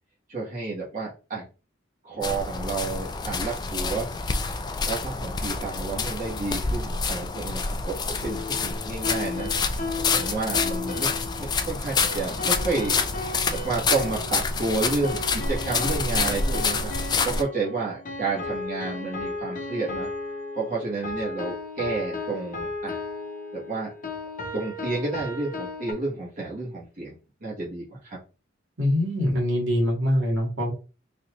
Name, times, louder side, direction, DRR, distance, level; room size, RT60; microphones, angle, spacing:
voice 1, 0.3-1.5 2.0-4.1 4.8-7.9 8.2-9.5 10.0-11.1 11.4-16.9 17.2-20.1 20.5-23.0 23.5-23.9 24.5-28.2, right 3 dB, 45° right, -6 dB, 1.3 m, -31 dB
sound 1, 2.2-17.4, left 4 dB, 20° left, 0.3 m, -28 dB
sound 2, 8.2-25.9, left 2 dB, 45° left, 0.8 m, -35 dB
voice 2, 28.8-30.7, left 1 dB, 70° right, -2 dB, 1.7 m, -23 dB
4.1 x 2.4 x 3.0 m, 0.33 s
head